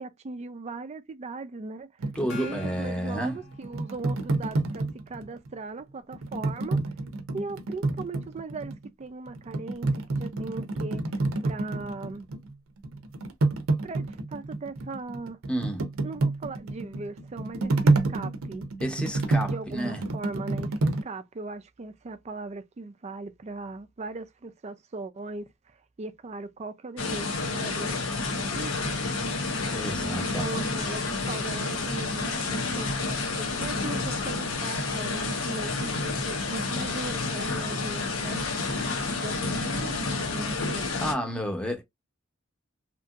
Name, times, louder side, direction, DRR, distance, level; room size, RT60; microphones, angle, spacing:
voice 1, 0.0-1.9 2.3-6.8 7.3-11.0 11.4-12.3 13.8-15.4 16.0-18.7 19.4-27.9 28.4-29.0 30.0-38.4 39.1-40.9, right 3 dB, 35° right, 0.4 m, -39 dB
sound 1, 2.0-5.5 6.1-8.9 9.3-12.5 12.8-21.0, right 2 dB, 80° right, 0.6 m, -28 dB
voice 2, 2.2-3.4 15.5-15.8 18.8-20.0 29.7-30.5 41.0-41.8, equal, 5° left, 0.8 m, -30 dB
Gong, 2.3-4.3, left 6 dB, 60° left, 0.8 m, -46 dB
sound 2, 27.0-41.1, left 3 dB, 90° left, 0.9 m, -30 dB
2.9 x 2.7 x 2.3 m
head